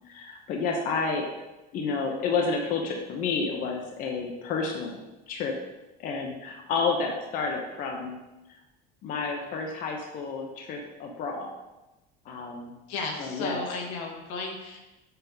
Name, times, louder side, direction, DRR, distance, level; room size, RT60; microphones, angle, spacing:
voice 1, 0.0-1.3 1.7-5.0 5.3-5.6 6.0-8.2 9.0-11.5 12.2-12.7 13.2-13.6, left 4 dB, 45° left, 1 dB, 0.9 m, -30 dB
voice 2, 12.9-14.8, left 3 dB, 85° left, 1 dB, 1.8 m, -34 dB
6.8 x 6.7 x 4.0 m, 1.0 s
cardioid pair, 160°, 20 cm